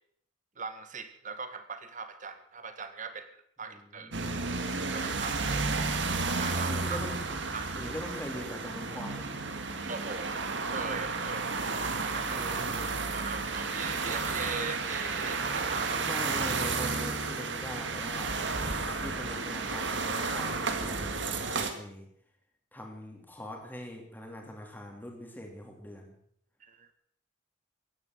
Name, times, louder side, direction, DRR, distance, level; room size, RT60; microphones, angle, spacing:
voice 1, 0.6-3.3 3.6-4.1 4.6-5.8 6.4-7.0 7.5-7.7 9.9-10.3 10.7-11.5 11.8-12.5 13.1-16.1 26.6-26.9, right 5 dB, 40° right, 9 dB, 1.8 m, -40 dB
voice 2, 3.7-4.1 6.7-7.2 7.7-9.3 12.3-12.7 16.0-18.4 18.8-22.1 22.7-26.1, left 1 dB, 10° left, 2 dB, 3.2 m, -42 dB
sound 1, 4.1-21.7, right 4 dB, 60° right, 1.9 m, -32 dB
16.0 x 10.5 x 7.9 m, 0.66 s
head